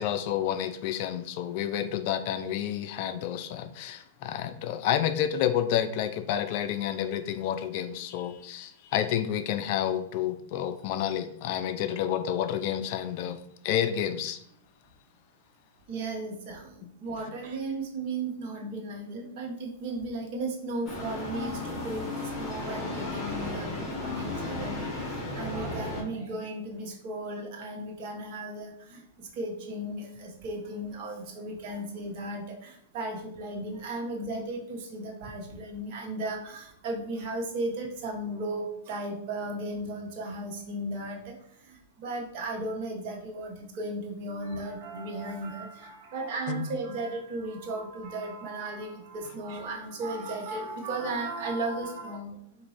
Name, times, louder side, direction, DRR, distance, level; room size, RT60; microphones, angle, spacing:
voice 1, 0.0-14.4 17.2-17.3 46.5-46.6, left 10 dB, 50° left, 10 dB, 0.3 m, -30 dB
voice 2, 15.9-41.3 41.7-52.4, right 2 dB, 50° right, 0 dB, 1.0 m, -35 dB
sound 1, 20.8-26.0, left 2 dB, 20° left, 1.5 m, -34 dB
3.9 x 2.5 x 3.2 m, 0.71 s
hypercardioid pair, 125°, 0 cm